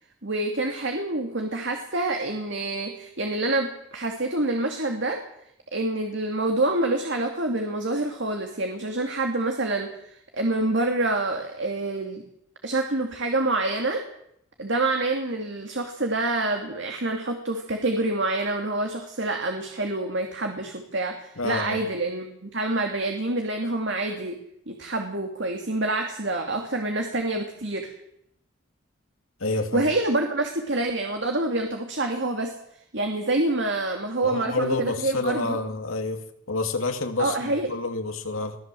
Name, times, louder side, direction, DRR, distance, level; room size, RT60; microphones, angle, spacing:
voice 1, 0.2-5.2 5.7-12.2 12.6-14.0 14.6-24.4 24.7-27.9 29.7-32.5 32.9-35.6 37.2-37.7, right 2 dB, 60° right, 3 dB, 2.4 m, -27 dB
voice 2, 21.4-21.8 29.4-29.9 34.2-36.2 36.5-38.6, left 3 dB, 85° left, 5 dB, 2.6 m, -28 dB
22.5 x 15.5 x 7.7 m, 0.75 s
head